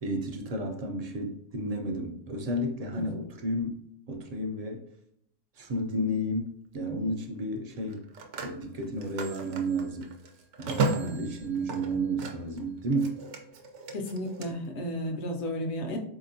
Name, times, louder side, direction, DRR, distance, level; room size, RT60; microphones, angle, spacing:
voice 1, 0.0-3.8 4.1-4.8 5.6-6.5 6.7-8.0 8.4-10.1 10.6-13.2, right 1 dB, 55° right, 3 dB, 0.4 m, -32 dB
Telephone, 5.6-5.8 7.8-12.6 12.9-14.5, right 4 dB, 90° right, 0.9 m, -35 dB
voice 2, 11.0-11.3 13.9-16.0, left 1 dB, 75° left, 4 dB, 0.9 m, -33 dB
4.2 x 2.8 x 2.6 m, 0.73 s
omnidirectional pair, 1.2 m